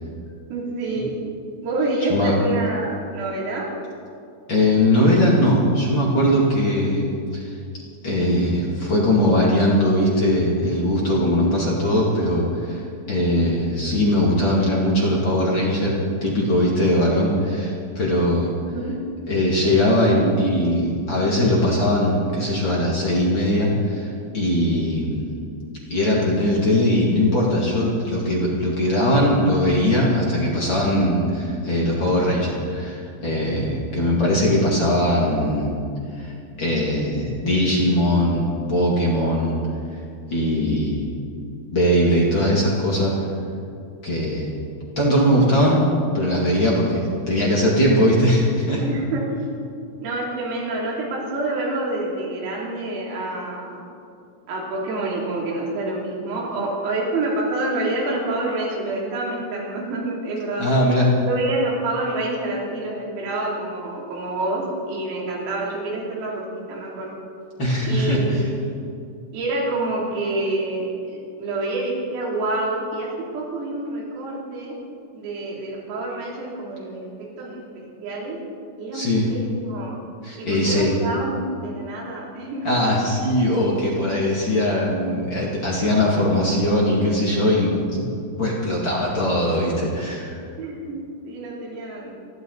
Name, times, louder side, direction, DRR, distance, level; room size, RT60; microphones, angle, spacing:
voice 1, 0.5-1.2 1.6-3.7 18.7-19.0 48.8-49.3 50.0-53.8 54.5-60.7 61.2-67.1 67.9-68.5 69.3-74.8 75.1-77.1 77.4-78.4 78.8-80.0 80.4-82.8 90.6-92.1, right 2 dB, 90° right, -3 dB, 5.8 m, -27 dB
voice 2, 4.5-7.5 8.0-12.8 13.1-18.5 19.3-25.3 25.9-35.7 36.2-36.3 36.6-39.5 40.3-41.0 41.7-43.1 44.0-44.5 45.0-45.8 46.1-48.8 60.6-61.1 67.6-68.4 78.9-79.2 80.2-80.9 82.6-88.0 88.4-90.4, left 1 dB, 35° left, -4 dB, 1.9 m, -20 dB
27.5 x 12.0 x 4.1 m, 2.4 s
omnidirectional pair, 5.8 m